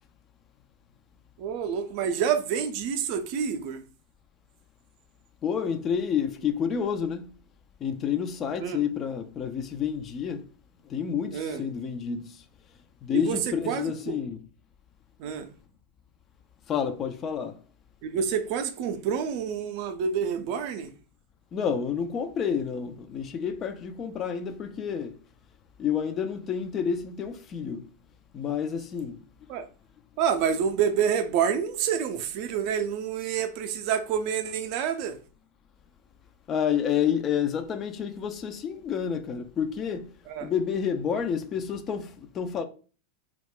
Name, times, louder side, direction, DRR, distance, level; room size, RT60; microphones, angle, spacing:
voice 1, 1.4-3.8 8.6-8.8 11.3-11.6 13.1-13.4 13.7-14.2 15.2-15.5 18.0-20.9 29.5-29.7 30.2-35.2 40.3-40.5, right 7 dB, 50° right, 0.4 m, -28 dB
voice 2, 5.4-7.2 7.8-10.5 10.9-12.4 13.0-14.4 16.7-17.6 21.5-25.1 25.8-27.9 28.3-29.2 36.5-40.1 40.4-42.6, left 7 dB, 30° left, 0.3 m, -29 dB
2.4 x 2.0 x 3.6 m
figure-of-eight pair, 95°, 0 cm